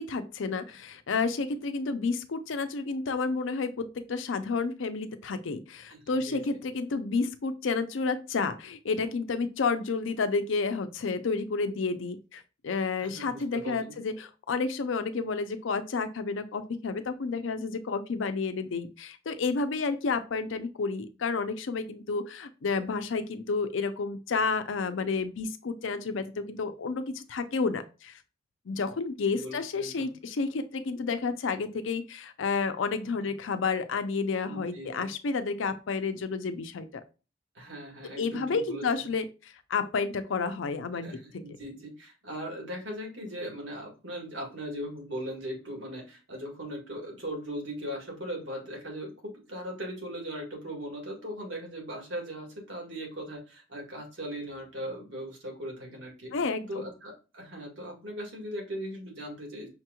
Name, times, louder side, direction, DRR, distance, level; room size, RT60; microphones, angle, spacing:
voice 1, 0.0-28.2 28.7-37.0 38.0-39.2 39.7-41.4 56.3-56.8, left 4 dB, 80° left, 9 dB, 0.5 m, -30 dB
voice 2, 5.9-6.6 13.0-13.9 29.3-30.1 34.4-35.1 37.5-39.1 41.0-56.3 56.7-59.7, equal, 70° right, 1 dB, 1.6 m, -39 dB
5.7 x 2.9 x 2.2 m, 0.32 s
head